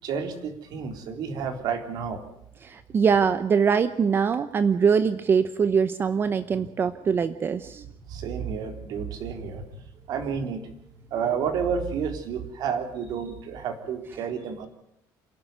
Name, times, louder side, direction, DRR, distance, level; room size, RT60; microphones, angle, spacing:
voice 1, 0.0-2.2 8.1-9.6 10.1-10.7 11.1-14.7, right 6 dB, 60° right, 7 dB, 3.7 m, -30 dB
voice 2, 2.6-7.8, right 6 dB, 30° right, 12 dB, 0.8 m, -23 dB
28.0 x 12.0 x 9.3 m, 0.80 s
cardioid pair, 165°, 8 cm